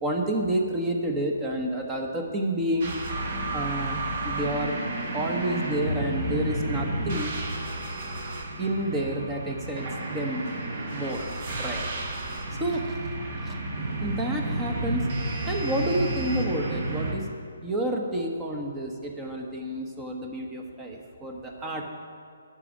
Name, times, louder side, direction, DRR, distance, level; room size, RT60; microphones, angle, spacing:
voice 1, 0.0-2.9 3.5-4.8 5.1-7.3 8.6-10.5 10.9-11.3 11.6-11.9 12.5-13.0 13.4-13.6 14.0-15.1 15.4-17.3 17.6-21.8, right 1 dB, 15° right, 2 dB, 1.1 m, -29 dB
sound 1, 2.8-17.1, right 2 dB, 50° right, 1.7 m, -31 dB
9.8 x 6.2 x 8.4 m, 2.2 s
figure-of-eight pair, 140°, 0 cm